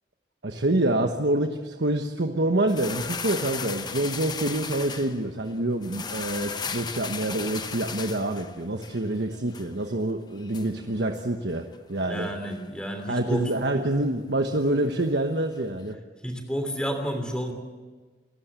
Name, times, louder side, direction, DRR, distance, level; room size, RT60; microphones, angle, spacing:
voice 1, 0.4-12.3 13.1-16.0, right 1 dB, 85° right, 5 dB, 1.2 m, -27 dB
sound 1, 2.7-15.9, left 5 dB, 25° left, 0.9 m, -38 dB
voice 2, 12.1-13.5 16.2-17.5, equal, 5° left, 6 dB, 3.0 m, -30 dB
28.5 x 15.0 x 8.2 m, 1.4 s
head